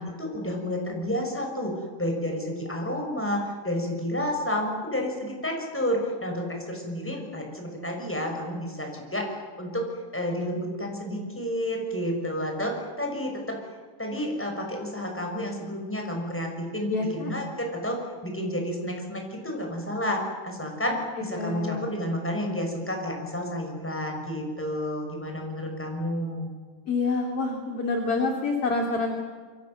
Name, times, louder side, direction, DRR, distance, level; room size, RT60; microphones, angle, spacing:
voice 1, 0.0-9.3 9.6-13.6 14.0-26.5, equal, ahead, 1 dB, 5.9 m, -30 dB
voice 2, 16.9-17.3 20.9-21.0 21.4-21.8 26.9-29.2, left 3 dB, 35° left, 2 dB, 2.9 m, -27 dB
28.0 x 24.0 x 7.9 m, 1.5 s
omnidirectional pair, 5.5 m